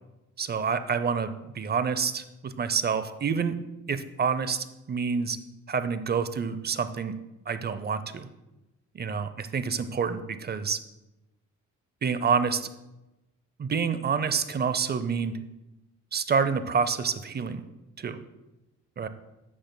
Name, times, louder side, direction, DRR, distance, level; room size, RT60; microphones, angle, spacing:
voice 1, 0.4-3.6 3.9-5.4 5.7-7.1 7.5-8.3 8.9-10.8 12.0-12.7 13.6-15.3 16.1-17.6 18.0-18.2 19.0-19.1, right 6 dB, 35° right, 12 dB, 0.6 m, -28 dB
12.0 x 8.5 x 2.2 m, 1.0 s
cardioid pair, 90°, 30 cm